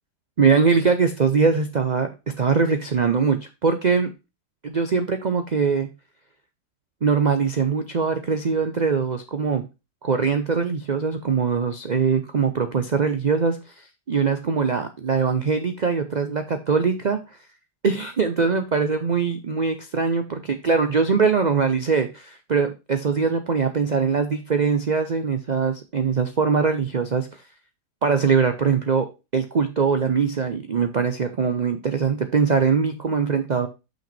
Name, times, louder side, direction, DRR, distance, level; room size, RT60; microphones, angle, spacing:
voice 1, 0.4-2.1 2.4-4.1 4.6-5.9 7.0-9.6 10.0-13.6 14.1-17.2 17.8-27.3 28.0-29.1 29.3-33.7, right 5 dB, 85° right, 8 dB, 0.3 m, -22 dB
6.0 x 5.7 x 4.2 m, 0.27 s
omnidirectional pair, 1.8 m